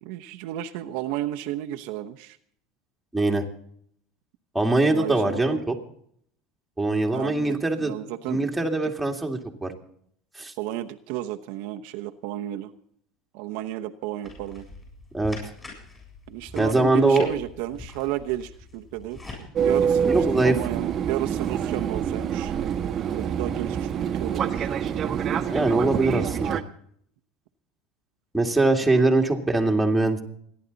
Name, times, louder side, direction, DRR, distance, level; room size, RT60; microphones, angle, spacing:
voice 1, 0.0-2.4 4.9-5.7 7.1-8.9 10.6-12.7 13.3-14.7 16.3-22.5 23.1-24.7, right 14 dB, 70° right, 5 dB, 0.9 m, -33 dB
voice 2, 3.1-3.4 4.5-5.8 6.8-7.9 8.3-9.7 10.4-10.5 15.1-15.4 16.6-17.3 20.0-20.5 25.5-26.6 28.3-30.2, right 2 dB, 5° right, 1 dB, 2.2 m, -22 dB
sound 1, 14.2-19.4, left 3 dB, 15° left, 7.7 m, -43 dB
Fixed-wing aircraft airplane, 19.6-26.6, right 8 dB, 35° right, 1.2 m, -26 dB
27.5 x 11.0 x 4.0 m, 0.65 s
supercardioid pair, 125°, 0 cm